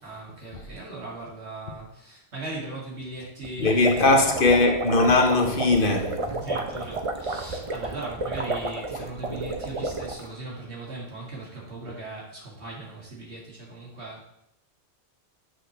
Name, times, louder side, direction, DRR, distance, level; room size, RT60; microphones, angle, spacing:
voice 1, 0.0-4.1 6.3-14.4, right 2 dB, 80° right, 2.7 m, -38 dB
sound 1, 3.4-10.3, right 3 dB, 35° right, 0.7 m, -31 dB
voice 2, 3.6-6.3, left 2 dB, 55° left, 1.1 m, -20 dB
7.7 x 6.1 x 3.3 m
omnidirectional pair, 1.1 m